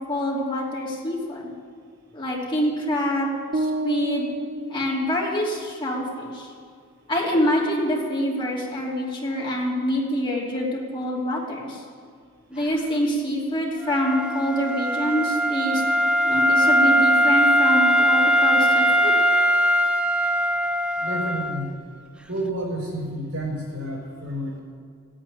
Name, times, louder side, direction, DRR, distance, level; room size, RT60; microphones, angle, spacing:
voice 1, 0.0-1.5 2.1-4.3 4.7-6.5 7.1-11.8 12.5-15.8 16.2-19.2, equal, 25° left, -4 dB, 2.9 m, -26 dB
sound 1, 3.5-5.7, right 1 dB, 45° right, 0.6 m, -30 dB
Wind instrument woodwind instrument, 13.8-21.6, equal, 5° right, 0.6 m, -20 dB
voice 2, 21.0-21.7 22.3-24.6, right 1 dB, 70° right, -1 dB, 5.2 m, -30 dB
16.0 x 8.9 x 9.8 m, 2.1 s
head